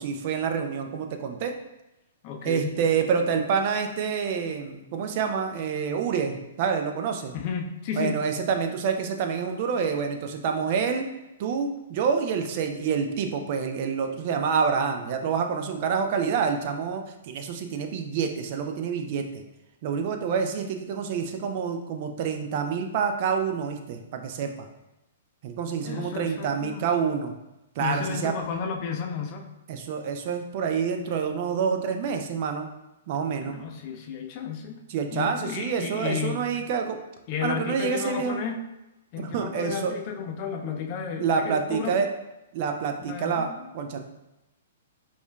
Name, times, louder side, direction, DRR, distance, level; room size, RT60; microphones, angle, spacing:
voice 1, 0.0-1.5 2.4-7.3 7.9-11.1 11.4-19.4 19.8-24.7 25.4-27.3 27.8-28.3 29.7-32.7 33.1-33.6 34.9-37.0 37.4-38.4 39.2-39.9 41.2-42.1 42.5-44.0, right 6 dB, 50° right, 5 dB, 0.4 m, -27 dB
voice 2, 2.2-2.8 7.3-8.2 25.8-26.8 27.8-29.5 33.4-34.8 35.1-36.5 37.3-38.6 39.1-41.9 43.1-43.7, left 7 dB, 40° left, 4 dB, 0.5 m, -33 dB
4.9 x 2.4 x 2.2 m, 0.94 s
hypercardioid pair, 120°, 0 cm